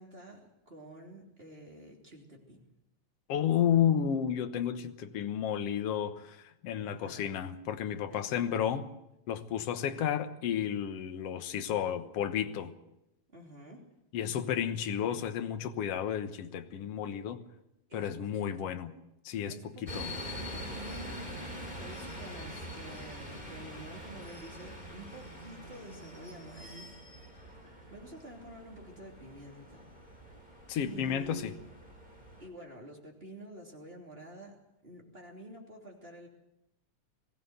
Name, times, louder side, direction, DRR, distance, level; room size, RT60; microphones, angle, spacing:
voice 1, 0.0-2.7 6.8-7.4 8.1-8.2 13.3-13.9 17.9-18.8 19.4-26.9 27.9-29.9 30.5-31.6 32.4-36.3, right 1 dB, 20° right, 3.1 m, -49 dB
voice 2, 3.3-8.9 9.3-12.7 14.1-17.4 17.9-18.9 19.3-20.1 30.7-31.5, left 9 dB, 60° left, 2.0 m, -32 dB
sound 1, 19.9-32.5, equal, 15° left, 3.4 m, -44 dB
21.0 x 16.0 x 8.1 m
omnidirectional pair, 3.4 m